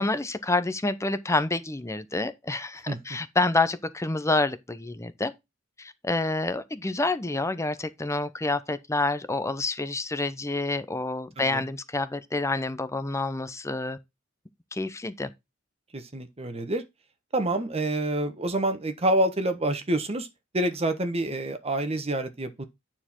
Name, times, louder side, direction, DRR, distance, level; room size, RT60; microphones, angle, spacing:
voice 1, 0.0-5.3 5.8-14.0 14.7-15.3, left 2 dB, 15° left, 0.7 m, -28 dB
voice 2, 15.9-16.8 17.3-20.3 20.5-22.6, right 1 dB, 30° right, 1.2 m, -27 dB
9.4 x 4.5 x 4.5 m
head